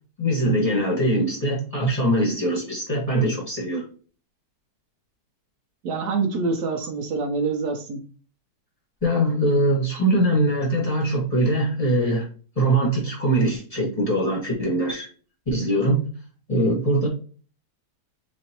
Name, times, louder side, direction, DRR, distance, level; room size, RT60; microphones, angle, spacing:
voice 1, 0.2-3.8 9.0-12.3 12.5-15.1 15.5-16.1 16.5-17.1, right 1 dB, 20° left, -4 dB, 1.4 m, -22 dB
voice 2, 5.8-8.0, right 4 dB, 70° right, 4 dB, 1.2 m, -26 dB
4.2 x 3.1 x 2.9 m, 0.39 s
omnidirectional pair, 1.8 m